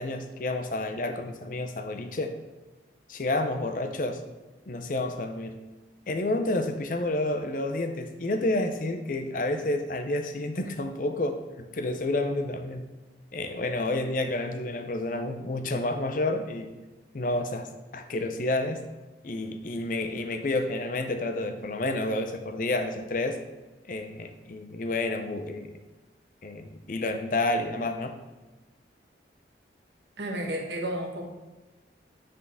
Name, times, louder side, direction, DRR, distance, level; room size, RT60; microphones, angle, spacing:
voice 1, 0.0-2.3 3.1-4.2 4.7-5.6 6.1-12.8 13.3-16.7 17.1-18.8 19.2-23.4 23.9-25.7 26.4-28.1, left 2 dB, 45° left, 7 dB, 0.5 m, -30 dB
voice 2, 30.2-31.2, right 1 dB, 75° right, 2 dB, 1.0 m, -32 dB
8.1 x 3.7 x 3.5 m, 1.2 s
head